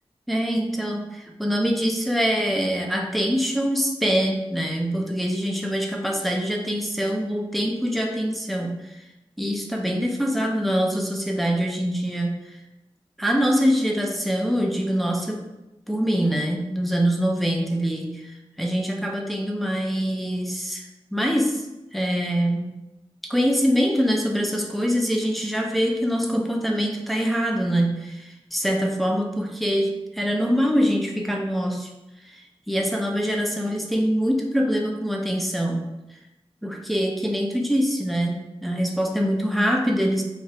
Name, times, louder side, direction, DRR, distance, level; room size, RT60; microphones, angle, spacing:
voice 1, 0.3-9.0 9.4-12.4 13.2-15.5 15.9-21.6 21.9-22.7 23.3-31.9 32.3-32.4 32.7-35.9 36.6-40.2, equal, ahead, 1 dB, 0.5 m, -24 dB
2.7 x 2.3 x 3.1 m, 0.96 s
cardioid pair, 55°, 11 cm